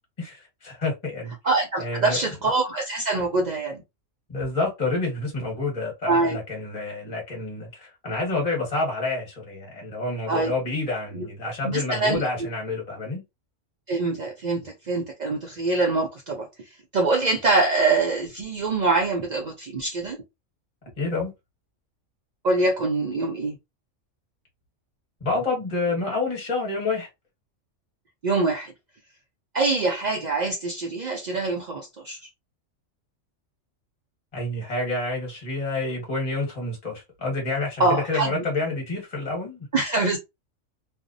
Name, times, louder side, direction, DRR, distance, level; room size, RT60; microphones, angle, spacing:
voice 1, 0.2-1.3 1.8-2.2 4.3-13.2 21.0-21.3 25.2-27.1 34.3-39.7, left 3 dB, 30° left, 1.2 m, -28 dB
voice 2, 1.4-3.8 6.1-6.4 10.3-10.5 11.1-11.3 11.6-12.2 13.9-16.5 16.9-20.2 22.4-23.6 28.2-28.7 29.5-32.2 37.8-38.5 39.7-40.2, right 3 dB, 60° right, 0.4 m, -24 dB
2.6 x 2.0 x 2.5 m
omnidirectional pair, 1.3 m